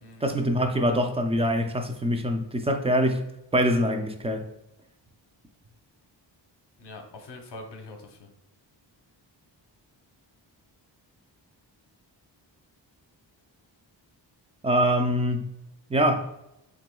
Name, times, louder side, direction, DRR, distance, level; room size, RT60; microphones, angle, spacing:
voice 1, 0.2-3.3 3.5-4.5 14.6-15.5 15.9-16.3, equal, 15° right, 0.4 m, -24 dB
voice 2, 6.8-8.2, left 2 dB, 65° left, 0.9 m, -43 dB
5.9 x 3.8 x 2.2 m
wide cardioid pair, 165°, 45 cm